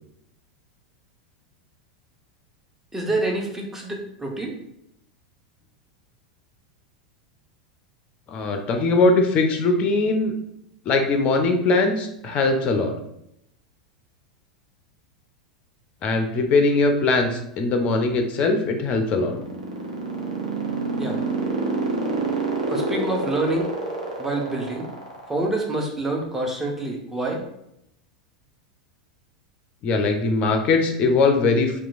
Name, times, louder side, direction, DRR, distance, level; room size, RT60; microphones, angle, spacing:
voice 1, 2.9-4.6 21.0-21.2 22.7-23.7 24.2-24.9 25.3-27.4, right 2 dB, 10° right, 0 dB, 0.6 m, -27 dB
voice 2, 8.3-10.3 10.9-12.9 16.0-19.3 29.8-31.8, left 3 dB, 35° left, 5 dB, 0.4 m, -21 dB
sound 1, 19.0-25.5, right 3 dB, 75° right, 0.7 m, -27 dB
2.9 x 2.2 x 2.5 m, 0.78 s
figure-of-eight pair, 85°, 4 cm